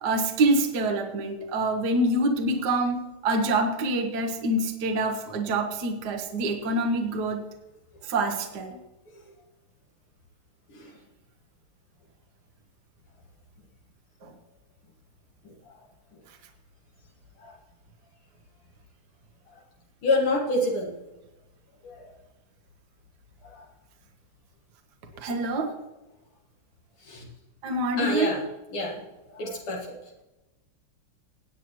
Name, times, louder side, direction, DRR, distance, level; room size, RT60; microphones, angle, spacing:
voice 1, 0.0-7.4 8.0-8.8 14.2-14.3 25.2-25.8 27.6-28.3, right 2 dB, 55° right, 3 dB, 1.5 m, -26 dB
voice 2, 20.0-20.9 21.8-22.1 27.1-27.2 28.0-28.4 28.7-28.9 29.3-29.8, left 2 dB, 75° left, -2 dB, 2.7 m, -26 dB
17.5 x 8.9 x 3.1 m, 1.0 s
omnidirectional pair, 2.4 m